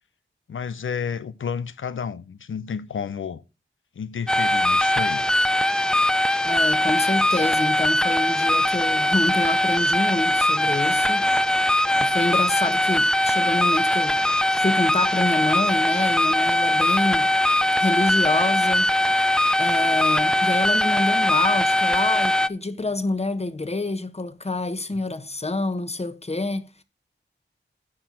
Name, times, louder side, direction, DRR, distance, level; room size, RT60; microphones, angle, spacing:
voice 1, 0.5-3.4 4.0-5.3, left 6 dB, 90° left, 0.7 m, -31 dB
sound 1, 4.3-22.5, left 1 dB, 5° left, 0.4 m, -21 dB
voice 2, 6.4-11.7 12.0-14.2 14.6-17.3 17.8-19.0 19.6-26.8, left 2 dB, 30° left, 1.2 m, -27 dB
9.7 x 4.5 x 7.5 m
wide cardioid pair, 55°, 20 cm